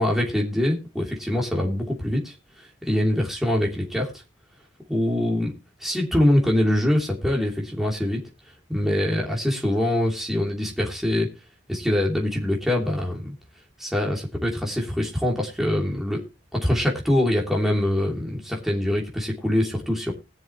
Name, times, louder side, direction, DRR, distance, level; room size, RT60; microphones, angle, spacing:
voice 1, 0.0-2.3 2.8-4.1 4.9-5.5 5.8-8.2 8.7-11.3 11.7-13.3 13.8-16.2 16.5-20.1, left 1 dB, ahead, -2 dB, 3.0 m, -24 dB
20.5 x 7.2 x 3.0 m, 0.29 s
head